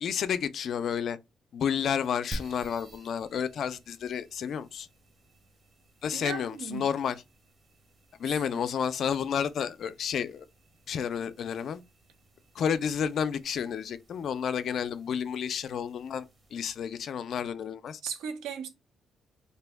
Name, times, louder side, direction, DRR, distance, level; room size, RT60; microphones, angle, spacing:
voice 1, 0.0-1.2 1.5-4.9 6.0-7.2 8.2-10.5 10.9-11.8 12.6-16.3 16.5-18.0, left 7 dB, 65° left, 0.3 m, -31 dB
sound 1, 2.3-17.0, right 1 dB, 35° right, 0.7 m, -50 dB
voice 2, 6.1-6.9 8.5-8.6 18.0-18.7, right 6 dB, 85° right, 0.6 m, -37 dB
2.6 x 2.1 x 3.3 m
cardioid pair, 90°, 0 cm